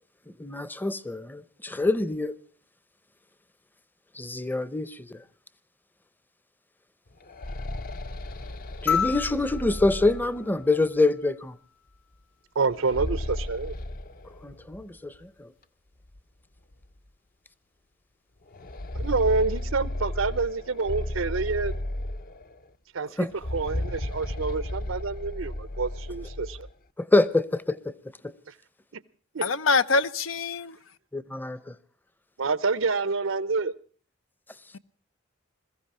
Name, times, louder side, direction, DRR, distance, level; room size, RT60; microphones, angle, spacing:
voice 1, 0.4-2.4 4.2-5.2 8.8-11.5 14.4-15.5 23.2-23.3 27.0-27.9 28.2-28.3 31.1-31.7, left 2 dB, 10° left, 0.7 m, -26 dB
sound 1, 7.1-10.9 12.6-14.8 15.2-15.3 16.1-16.2 16.7-16.9 18.5-22.6 23.3-26.7, left 1 dB, 45° left, 0.7 m, -34 dB
sound 2, 8.9-11.4 13.0-13.1, left 7 dB, 65° left, 1.2 m, -32 dB
voice 2, 12.6-13.7 18.9-21.7 22.9-23.1 23.5-26.6 29.3-29.4 32.4-33.7, right 4 dB, 90° right, 0.8 m, -27 dB
voice 3, 29.4-30.8 34.7-34.8, left 4 dB, 90° left, 0.7 m, -24 dB
21.5 x 15.0 x 4.3 m
head